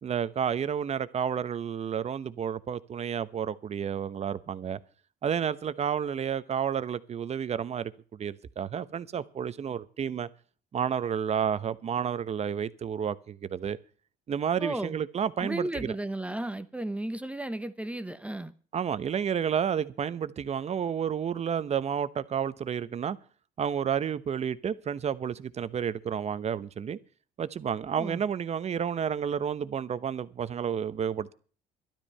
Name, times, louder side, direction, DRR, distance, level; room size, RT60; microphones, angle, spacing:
voice 1, 0.0-4.8 5.2-10.3 10.7-13.8 14.3-16.0 18.7-23.2 23.6-27.0 27.4-31.3, right 8 dB, 40° right, 0.9 m, -31 dB
voice 2, 14.6-15.0 15.4-18.5 28.0-28.2, right 1 dB, 5° right, 0.8 m, -34 dB
12.5 x 12.0 x 5.5 m
cardioid pair, 110°, 17 cm